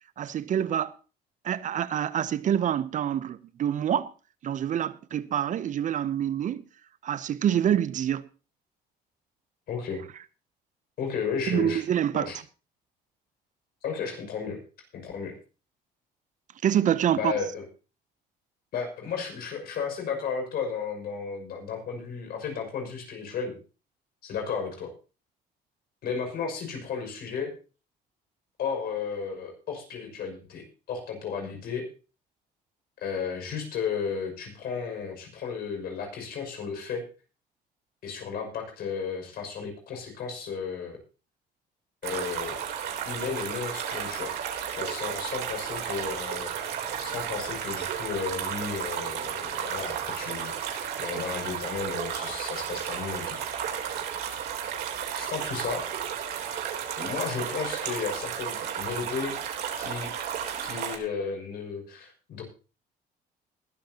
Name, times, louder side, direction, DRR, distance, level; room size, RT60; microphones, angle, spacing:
voice 1, 0.2-1.0 1.4-4.1 4.4-6.7 7.0-8.3 11.5-12.3 16.6-17.3 50.8-51.0, right 10 dB, 50° right, 0.7 m, -26 dB
voice 2, 9.7-10.0 11.0-11.8 12.1-12.4 13.8-14.6 14.9-15.3 17.1-17.6 18.7-23.5 24.2-24.9 26.0-27.6 28.6-31.9 33.0-37.0 38.0-41.0 42.0-42.6 43.0-44.3 44.7-53.4 55.1-55.8 57.0-59.4 59.8-60.1 60.6-62.4, left 6 dB, 65° left, 6.1 m, -34 dB
sound 1, 42.0-61.0, right 8 dB, 75° right, 3.4 m, -33 dB
20.5 x 13.0 x 2.9 m
cardioid pair, 110°, 17 cm